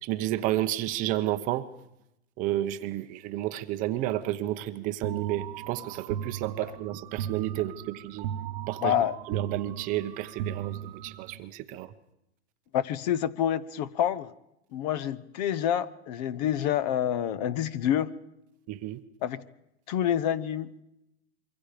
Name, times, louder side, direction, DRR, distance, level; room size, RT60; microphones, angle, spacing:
voice 1, 0.0-1.7 2.4-8.3 8.7-8.9 9.3-11.9 18.7-19.0, right 14 dB, 25° right, 9 dB, 0.7 m, -31 dB
sound 1, 5.0-11.4, right 10 dB, 45° right, 1.0 m, -37 dB
voice 2, 8.8-9.1 12.7-14.3 14.7-18.1 19.2-19.4 19.9-20.7, left 10 dB, 40° left, 18 dB, 0.8 m, -27 dB
26.5 x 24.0 x 5.1 m, 0.83 s
supercardioid pair, 160°, 34 cm